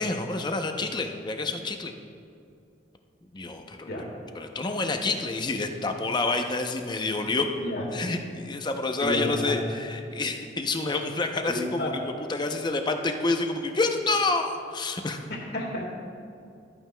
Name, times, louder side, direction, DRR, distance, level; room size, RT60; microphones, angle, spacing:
voice 1, 0.0-1.9 3.3-3.9 4.3-7.5 7.9-15.3, left 3 dB, 25° left, 5 dB, 0.6 m, -28 dB
voice 2, 9.0-9.6 11.4-11.9 15.3-15.9, left 1 dB, 60° left, -1 dB, 1.7 m, -31 dB
13.0 x 9.0 x 2.2 m, 2.4 s
head